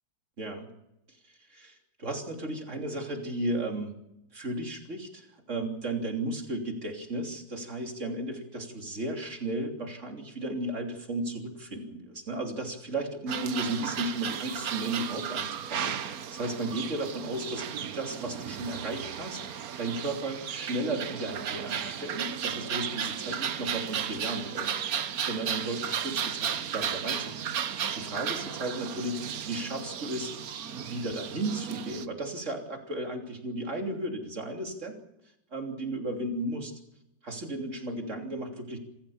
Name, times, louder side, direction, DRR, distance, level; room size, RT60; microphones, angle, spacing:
voice 1, 0.4-0.7 1.3-3.9 4.3-17.7 17.9-30.3 30.8-35.0 35.5-36.7 37.2-38.8, right 2 dB, 35° right, 3 dB, 3.4 m, -34 dB
sound 1, 13.3-32.1, right 8 dB, 55° right, 1.2 m, -34 dB
27.5 x 15.0 x 7.2 m, 0.87 s
omnidirectional pair, 2.2 m